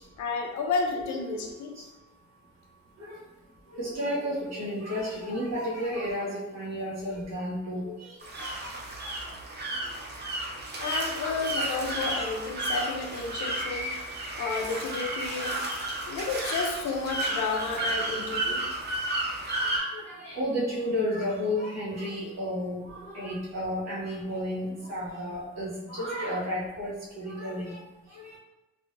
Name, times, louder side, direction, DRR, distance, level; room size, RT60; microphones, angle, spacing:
voice 1, 0.2-1.8 10.8-13.9 14.3-15.6 16.1-18.6, left 4 dB, 70° left, 2 dB, 0.6 m, -31 dB
voice 2, 0.9-1.2 3.0-3.2 3.7-8.7 9.0-9.1 11.2-11.9 16.9-17.0 19.5-27.8 28.1-28.3, equal, 55° right, -6 dB, 1.1 m, -33 dB
sound 1, 8.2-19.8, right 1 dB, 35° right, 0.6 m, -32 dB
3.4 x 2.6 x 2.6 m, 1.0 s
cardioid pair, 100°, 31 cm